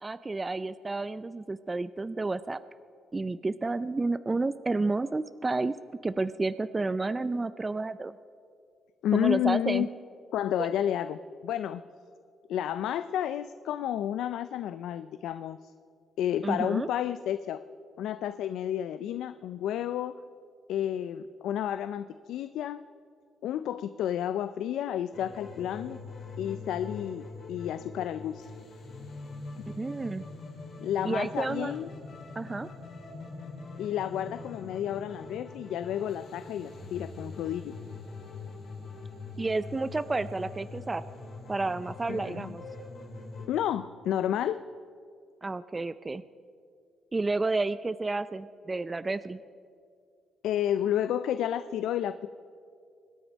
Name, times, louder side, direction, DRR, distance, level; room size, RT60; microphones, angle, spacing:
voice 1, 0.0-2.6 3.1-5.8 6.0-8.1 9.1-9.9 16.4-16.9 29.8-30.3 31.0-31.7 32.4-32.7 39.4-41.0 41.5-42.6 45.4-46.2 47.1-49.4, right 3 dB, 25° right, 14 dB, 0.4 m, -30 dB
voice 2, 9.0-9.9 10.3-11.8 12.5-15.6 16.2-17.6 18.0-20.2 20.7-22.8 23.4-26.0 26.4-28.5 30.8-31.9 33.8-37.8 42.1-42.6 43.5-44.6 50.4-52.3, left 10 dB, 80° left, 12 dB, 0.4 m, -31 dB
sound 1, 25.1-43.5, left 3 dB, 65° left, 3.7 m, -43 dB
24.5 x 10.0 x 5.2 m, 2.3 s
cardioid pair, 90°, 0 cm